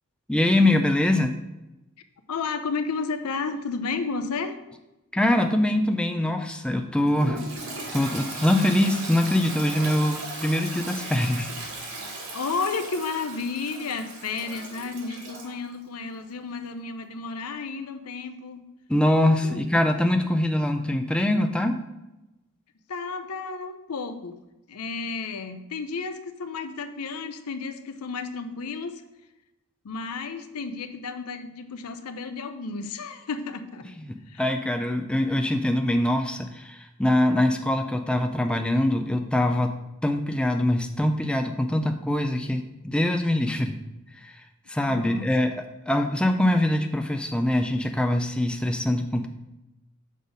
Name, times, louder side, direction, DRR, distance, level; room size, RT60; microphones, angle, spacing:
voice 1, 0.3-1.4 5.1-7.4 7.9-11.5 18.9-21.8 34.1-39.8 40.0-43.8 44.2-44.4 44.7-49.3, left 1 dB, 5° left, 5 dB, 0.4 m, -23 dB
voice 2, 2.3-4.6 12.3-18.6 19.4-19.6 22.9-24.4 24.7-29.0 29.8-33.9 34.3-34.4 44.9-45.3, left 4 dB, 80° left, 9 dB, 0.6 m, -32 dB
Toilet flush, 7.0-15.5, right 2 dB, 75° right, 1.7 m, -37 dB
6.3 x 4.0 x 5.1 m, 0.98 s
head